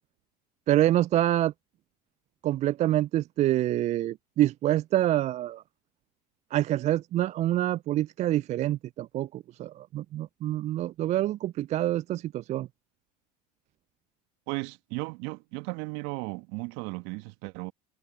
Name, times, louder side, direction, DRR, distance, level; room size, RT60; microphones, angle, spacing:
voice 1, 0.7-1.5 2.4-5.6 6.5-12.7, right 14 dB, 35° right, 0.4 m, -26 dB
voice 2, 14.5-17.7, right 27 dB, 60° right, 1.8 m, -35 dB
hypercardioid pair, 75°, 20 cm